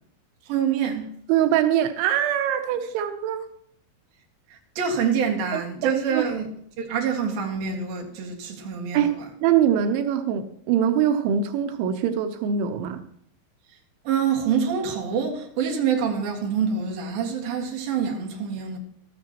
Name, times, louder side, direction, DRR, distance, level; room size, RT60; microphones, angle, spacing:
voice 1, 0.5-1.1 4.5-6.5 6.8-9.1 14.0-18.8, right 7 dB, 60° right, 3.2 m, -26 dB
voice 2, 1.3-3.5 5.5-6.2 8.9-13.0, right 9 dB, 90° right, 3.1 m, -23 dB
14.0 x 13.0 x 3.0 m
omnidirectional pair, 5.2 m